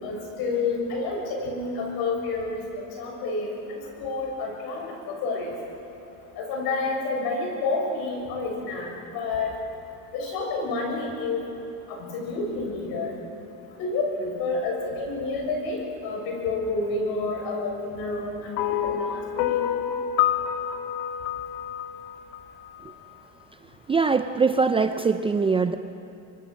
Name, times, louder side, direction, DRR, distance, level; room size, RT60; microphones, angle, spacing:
voice 1, 0.0-2.6 3.0-5.5 6.4-9.6 10.1-11.4 11.9-13.1 13.8-19.6, left 3 dB, 60° left, 0 dB, 7.3 m, -29 dB
sound 1, 18.6-22.9, left 10 dB, 80° left, 1.5 m, -28 dB
voice 2, 23.9-25.7, right 4 dB, 15° right, 9 dB, 0.5 m, -22 dB
25.0 x 24.0 x 6.5 m, 3.0 s
cardioid pair, 135°, 41 cm